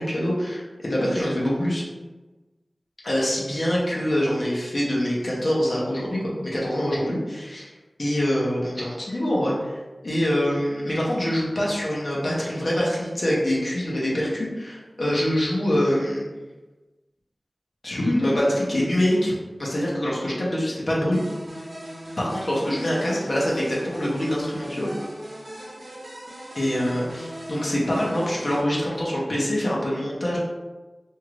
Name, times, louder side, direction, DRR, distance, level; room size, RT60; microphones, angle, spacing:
voice 1, 0.0-1.8 3.0-7.7 8.0-16.2 17.8-19.3 19.6-21.2 22.2-24.9 26.5-30.4, equal, 65° left, -5 dB, 0.8 m, -25 dB
sound 1, 21.1-28.6, right 1 dB, 75° right, 0.7 m, -39 dB
2.7 x 2.4 x 3.2 m, 1.2 s
wide cardioid pair, 45°, 0 cm